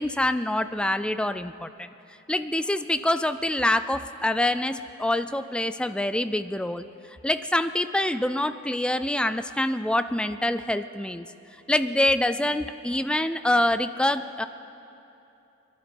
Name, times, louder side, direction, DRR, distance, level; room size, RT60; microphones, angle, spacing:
voice 1, 0.0-1.9 2.3-6.9 7.2-11.3 11.7-14.4, left 1 dB, 5° left, 12 dB, 0.3 m, -25 dB
22.0 x 11.5 x 5.3 m, 2.9 s
head